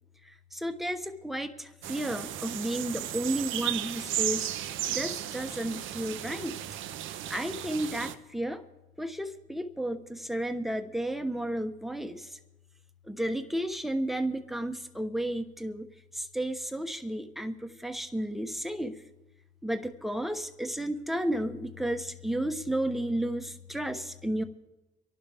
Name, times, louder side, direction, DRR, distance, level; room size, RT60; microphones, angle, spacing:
voice 1, 0.5-4.5 4.9-6.6 7.3-8.6 9.0-12.3 13.1-15.9 16.1-19.0 19.6-24.4, right 1 dB, ahead, 7 dB, 1.1 m, -32 dB
sound 1, 1.8-8.1, right 12 dB, 80° right, 0.7 m, -35 dB
26.0 x 11.5 x 3.5 m, 1.1 s
cardioid pair, 90°, 20 cm